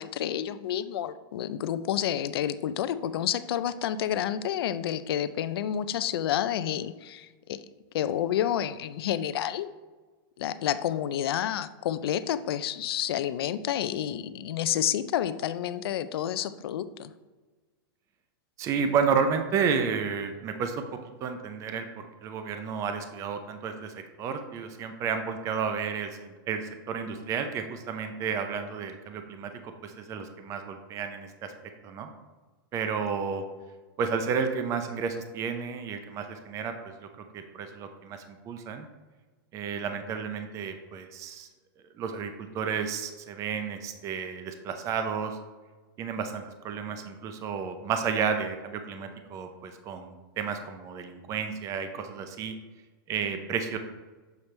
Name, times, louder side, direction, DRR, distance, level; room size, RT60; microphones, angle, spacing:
voice 1, 0.0-7.6 7.9-9.7 10.4-17.1, left 10 dB, 75° left, 13 dB, 0.4 m, -29 dB
voice 2, 18.6-20.8 21.2-31.5 31.8-32.1 32.7-33.4 34.0-37.1 37.3-38.9 39.5-41.5 42.0-45.4 46.0-52.5 53.1-53.8, right 6 dB, 25° right, 7 dB, 0.5 m, -32 dB
6.9 x 4.4 x 3.2 m, 1.3 s
supercardioid pair, 150°, 13 cm